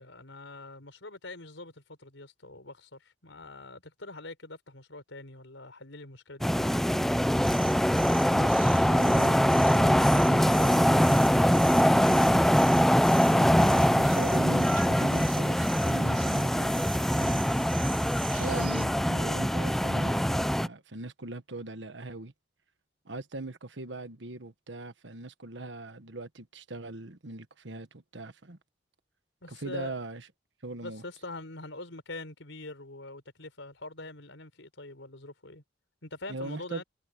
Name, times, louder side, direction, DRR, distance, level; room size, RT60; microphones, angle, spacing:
voice 1, 0.0-6.8 29.4-29.9 30.8-35.6 36.0-36.8, left 2 dB, 85° left, 4.7 m, -44 dB
sound 1, 6.4-20.7, equal, ahead, 0.4 m, -23 dB
sound 2, 7.3-18.8, right 11 dB, 50° right, 2.6 m, -45 dB
voice 2, 8.3-12.2 13.3-17.8 18.3-22.3 23.0-28.6 29.5-30.3 30.6-31.0 36.3-36.8, right 2 dB, 70° right, 1.4 m, -41 dB
head